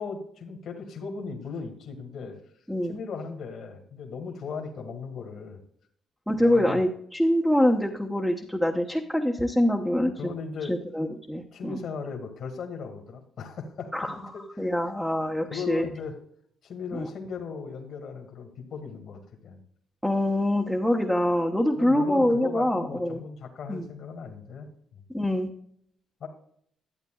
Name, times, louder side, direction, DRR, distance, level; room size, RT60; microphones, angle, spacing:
voice 1, 0.0-2.4 2.8-5.6 6.4-6.8 10.2-10.7 11.5-14.7 15.5-16.1 16.6-19.6 21.8-24.7 26.2-26.3, left 5 dB, 65° left, 3 dB, 1.7 m, -37 dB
voice 2, 6.3-10.1 10.7-11.8 13.9-14.2 14.6-15.9 16.9-17.1 20.0-23.2 23.7-23.9 25.1-25.5, left 1 dB, ahead, -1 dB, 0.9 m, -25 dB
12.0 x 8.2 x 2.3 m, 0.66 s
cardioid pair, 90°, 0 cm